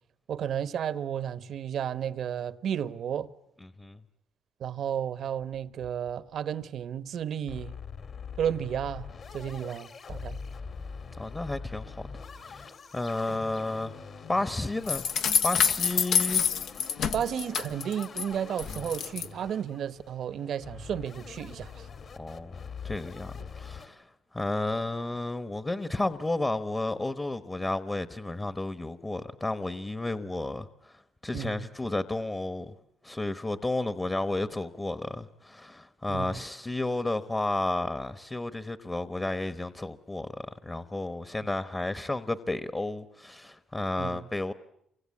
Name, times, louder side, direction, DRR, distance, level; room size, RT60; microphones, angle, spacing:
voice 1, 0.3-3.3 4.6-7.7 8.4-10.4 13.3-13.4 17.1-21.9 31.3-31.7 36.1-36.4 44.0-44.3, right 9 dB, 65° right, 1.0 m, -33 dB
voice 2, 3.6-4.0 11.2-14.0 14.3-15.1 15.4-16.5 22.2-22.6 22.8-32.7 33.0-44.5, left 2 dB, 20° left, 1.1 m, -32 dB
sound 1, 5.4-6.3 6.6-6.7 7.0-7.1 7.5-23.9, left 5 dB, 55° left, 2.5 m, -44 dB
sound 2, 14.9-18.2 18.6-19.3, left 7 dB, 75° left, 1.1 m, -27 dB
28.5 x 24.5 x 8.5 m
cardioid pair, 90°, 0 cm